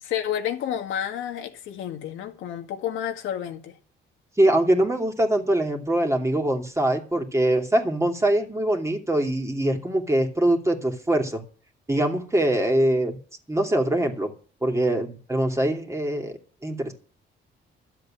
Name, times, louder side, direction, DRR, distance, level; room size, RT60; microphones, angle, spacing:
voice 1, 0.0-3.8, left 10 dB, 90° left, 2.0 m, -30 dB
voice 2, 4.4-11.4 11.9-13.2 13.5-14.3 14.6-16.9, right 1 dB, 15° right, 2.7 m, -23 dB
12.5 x 7.7 x 8.9 m
cardioid pair, 90°, 20 cm